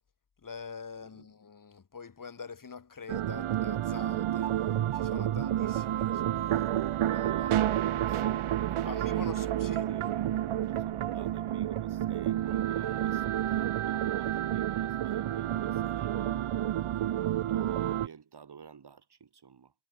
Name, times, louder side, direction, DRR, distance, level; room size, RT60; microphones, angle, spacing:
voice 1, 0.4-4.5 4.9-7.2 8.8-9.8, left 5 dB, 40° left, 2.0 m, -45 dB
sound 1, 3.1-18.1, right 12 dB, 85° right, 0.9 m, -30 dB
voice 2, 7.0-16.7 17.2-19.7, right 6 dB, 55° right, 4.0 m, -49 dB
wide cardioid pair, 155°, 48 cm